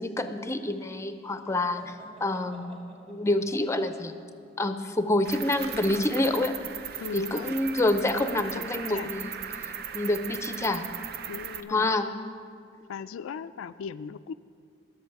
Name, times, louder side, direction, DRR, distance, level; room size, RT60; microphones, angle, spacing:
voice 1, 0.0-2.0 2.2-2.8 3.1-4.1 4.6-6.6 7.1-10.9 11.7-12.1, left 2 dB, 15° left, 9 dB, 0.5 m, -27 dB
sound 1, 1.7-5.4, equal, 35° right, 2.3 m, -52 dB
Cricket, 5.2-11.6, right 8 dB, 50° right, 0.5 m, -38 dB
voice 2, 7.0-7.6 8.1-9.1 11.3-11.9 12.9-14.3, left 6 dB, 90° left, 12 dB, 0.3 m, -38 dB
19.5 x 7.0 x 4.7 m, 2.2 s
head